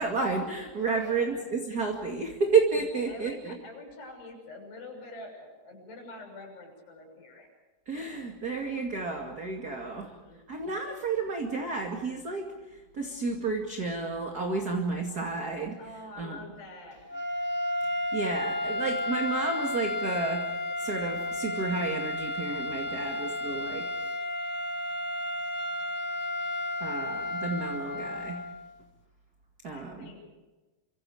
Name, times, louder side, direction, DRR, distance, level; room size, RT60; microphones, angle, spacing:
voice 1, 0.0-3.5 7.9-10.1 10.5-12.5 12.9-15.8 16.2-16.4 18.1-20.4 20.8-23.9 26.8-28.4 29.6-30.1, right 4 dB, 30° right, 1 dB, 2.0 m, -31 dB
voice 2, 0.9-1.5 2.4-2.5 3.0-7.5 8.0-8.2 9.7-10.4 15.8-17.1 29.7-30.2, left 2 dB, 85° left, 2 dB, 8.5 m, -46 dB
sound 1, 17.1-28.6, left 1 dB, 25° left, 1.7 m, -32 dB
28.5 x 25.5 x 5.0 m, 1.2 s
omnidirectional pair, 4.7 m